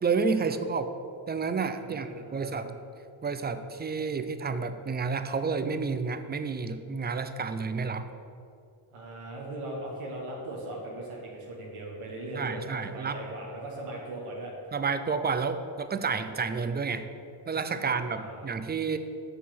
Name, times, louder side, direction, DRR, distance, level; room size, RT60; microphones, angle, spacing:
voice 1, 0.0-0.9 1.3-2.7 3.2-8.1 12.4-13.2 14.7-17.1 17.5-19.0, right 5 dB, 20° right, 10 dB, 0.5 m, -30 dB
voice 2, 1.8-2.7 8.9-14.5 17.8-18.5, right 1 dB, 90° right, -2 dB, 1.5 m, -39 dB
6.4 x 5.6 x 6.0 m, 2.4 s
cardioid pair, 75°, 50 cm